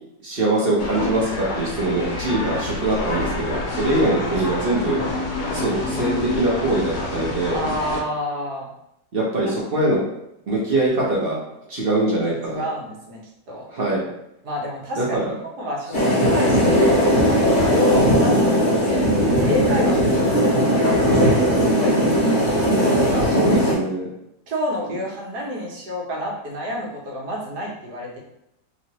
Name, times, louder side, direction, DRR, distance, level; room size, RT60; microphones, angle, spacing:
voice 1, 0.2-5.0 5.5-7.6 9.1-10.0 10.5-11.4 11.7-12.6 13.7-14.1 15.0-15.3 23.4-24.1, right 2 dB, 45° right, -5 dB, 0.8 m, -23 dB
sound 1, 0.8-8.0, left 2 dB, 75° left, 1.2 m, -27 dB
voice 2, 7.5-8.7 9.7-9.9 12.2-13.2 13.5-13.7 14.4-19.1 19.4-22.0 22.3-23.3 24.5-28.2, left 1 dB, 70° right, -2 dB, 1.5 m, -29 dB
sound 2, 15.9-23.7, equal, 35° left, 1.0 m, -18 dB
3.1 x 3.0 x 2.8 m, 0.83 s
omnidirectional pair, 1.8 m